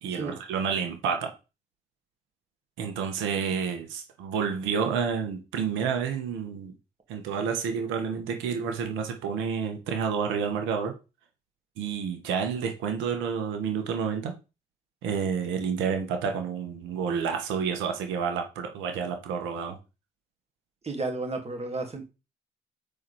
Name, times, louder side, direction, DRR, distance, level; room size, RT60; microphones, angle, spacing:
voice 1, 0.0-1.3 2.8-6.7 7.1-10.9 11.8-14.3 15.0-19.8, right 6 dB, 85° right, 1.5 m, -29 dB
voice 2, 20.8-22.0, right 3 dB, 30° right, 2.7 m, -32 dB
7.3 x 4.6 x 4.3 m
supercardioid pair, 60°, 19 cm